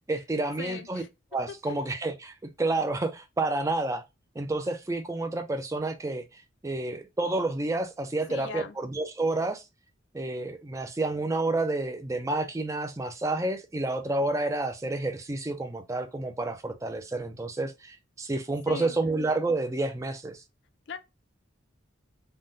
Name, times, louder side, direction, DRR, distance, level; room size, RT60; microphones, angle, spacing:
voice 1, 0.1-1.0 1.3-4.0 4.4-9.6 10.1-20.4, right 2 dB, 15° right, 0.3 m, -30 dB
voice 2, 0.6-1.1 1.7-1.8 8.3-8.8 18.7-18.9 20.9-21.0, left 6 dB, 60° left, 0.4 m, -39 dB
3.5 x 2.1 x 2.6 m
head